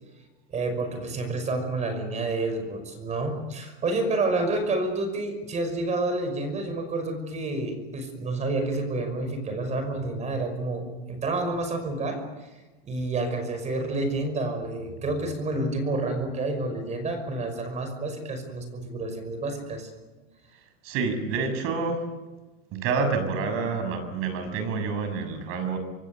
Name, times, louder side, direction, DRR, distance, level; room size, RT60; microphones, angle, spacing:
voice 1, 0.5-12.5 12.8-19.9, right 2 dB, 20° right, 7 dB, 5.8 m, -29 dB
voice 2, 20.8-22.1 22.7-25.8, right 4 dB, 45° right, 8 dB, 6.7 m, -28 dB
26.0 x 24.0 x 8.1 m, 1.2 s
supercardioid pair, 155°, 31 cm